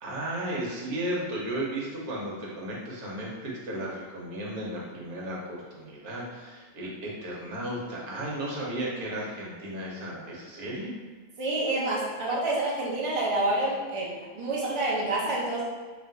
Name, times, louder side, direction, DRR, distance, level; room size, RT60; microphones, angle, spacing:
voice 1, 0.0-10.9, right 1 dB, 65° right, -4 dB, 1.4 m, -34 dB
voice 2, 11.4-15.6, right 2 dB, 35° right, -6 dB, 0.4 m, -28 dB
3.4 x 2.9 x 3.8 m, 1.4 s
omnidirectional pair, 1.8 m